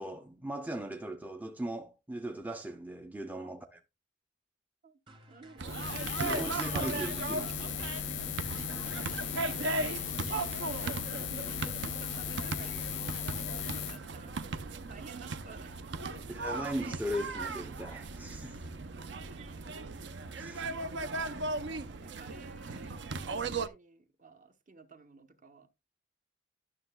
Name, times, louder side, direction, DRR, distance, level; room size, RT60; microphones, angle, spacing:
voice 1, 0.0-3.7 6.2-7.7 16.3-18.6 20.3-20.7, right 1 dB, 10° right, 0.5 m, -38 dB
sound 1, 5.1-13.4, right 1 dB, 25° right, 1.2 m, -56 dB
voice 2, 5.3-5.9 9.2-9.3 10.7-16.6 19.3-19.5 20.3-25.7, right 3 dB, 40° right, 0.9 m, -54 dB
Buzz, 5.6-14.0, left 10 dB, 65° left, 0.4 m, -37 dB
sound 2, 5.6-23.7, right 3 dB, 60° right, 0.6 m, -37 dB
11.5 x 6.5 x 2.2 m
head